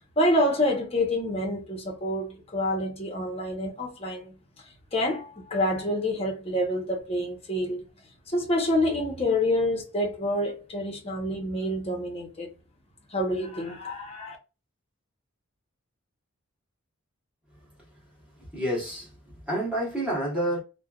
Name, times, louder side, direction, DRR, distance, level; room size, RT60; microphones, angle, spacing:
voice 1, 0.2-4.3 4.9-7.8 8.3-12.5 13.1-14.4, left 1 dB, 30° left, 0.8 m, -27 dB
voice 2, 18.4-19.2 19.5-20.6, right 1 dB, 5° right, 1.2 m, -28 dB
3.2 x 2.2 x 2.3 m
head